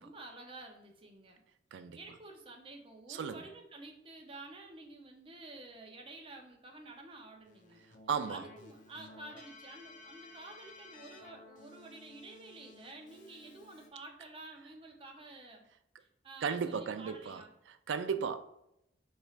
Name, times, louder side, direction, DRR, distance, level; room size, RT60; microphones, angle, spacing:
voice 1, 0.0-1.4 1.7-7.8 8.3-15.6 16.0-17.5, right 2 dB, 30° right, 0.6 m, -50 dB
voice 2, 3.1-3.4 8.1-8.4 16.4-17.4 17.7-18.4, right 6 dB, 85° right, 0.3 m, -35 dB
Keyboard (musical), 7.4-13.9, left 2 dB, 45° left, 0.6 m, -55 dB
4.3 x 3.1 x 2.4 m
head